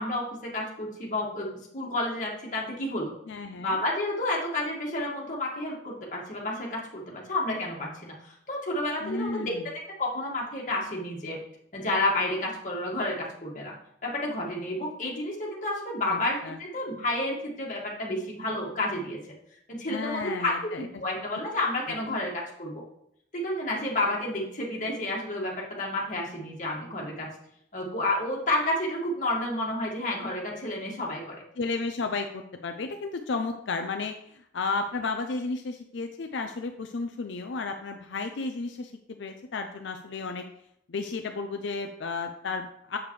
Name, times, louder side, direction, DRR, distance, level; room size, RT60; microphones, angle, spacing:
voice 1, 0.0-3.1 3.6-9.5 10.0-11.4 11.7-13.7 14.0-19.3 19.7-22.8 23.3-27.3 27.7-31.4, left 1 dB, 45° left, -3 dB, 1.9 m, -30 dB
voice 2, 3.3-3.8 9.0-9.7 16.1-16.6 19.9-20.9 31.6-40.5 40.9-43.0, left 4 dB, 85° left, 5 dB, 0.5 m, -33 dB
7.2 x 6.9 x 3.2 m, 0.73 s
head